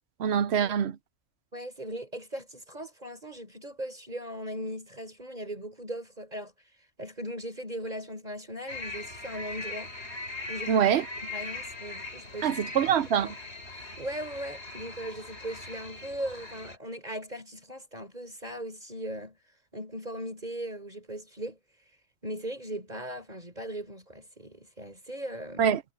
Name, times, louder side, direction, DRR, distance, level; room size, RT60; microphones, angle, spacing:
voice 1, 0.2-1.0 10.7-11.0 12.4-13.3 25.6-25.8, right 8 dB, 55° right, 0.9 m, -24 dB
voice 2, 1.5-6.5 7.0-9.9 10.5-10.9 11.2-12.5 13.2-13.3 13.7-19.4 19.7-21.6 22.2-25.8, right 1 dB, 30° right, 4.4 m, -38 dB
sound 1, 8.7-16.8, left 3 dB, 50° left, 6.4 m, -40 dB
omnidirectional pair, 1.4 m